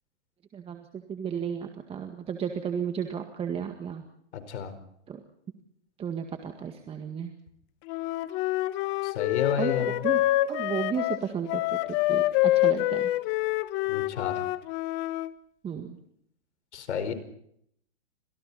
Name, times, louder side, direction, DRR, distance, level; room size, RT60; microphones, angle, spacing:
voice 1, 0.5-4.1 5.1-5.2 6.0-7.3 9.6-9.7 10.0-10.2 10.5-13.1 15.6-16.0, right 7 dB, 15° right, 6 dB, 1.9 m, -33 dB
voice 2, 4.3-4.7 9.0-10.0 13.9-14.4 16.7-17.1, left 8 dB, 70° left, 9 dB, 4.9 m, -31 dB
Wind instrument woodwind instrument, 7.9-15.3, left 17 dB, 30° left, 1.2 m, -27 dB
30.0 x 26.5 x 4.3 m, 0.71 s
hypercardioid pair, 140°, 35 cm